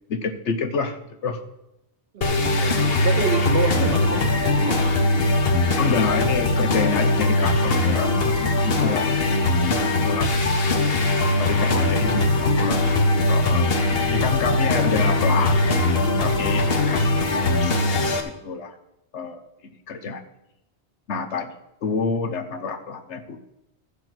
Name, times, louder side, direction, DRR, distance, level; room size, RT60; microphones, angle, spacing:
voice 1, 0.1-1.4 5.8-10.8 11.4-13.7 14.1-18.7 19.1-20.2 21.1-21.5 21.8-23.5, left 5 dB, 90° left, 7 dB, 1.3 m, -28 dB
voice 2, 2.1-5.0 9.8-9.9 11.4-11.7, right 6 dB, 60° right, 10 dB, 0.9 m, -28 dB
sound 1, 2.2-18.2, left 2 dB, 60° left, 1.2 m, -21 dB
13.5 x 5.3 x 6.0 m, 0.87 s
omnidirectional pair, 1.1 m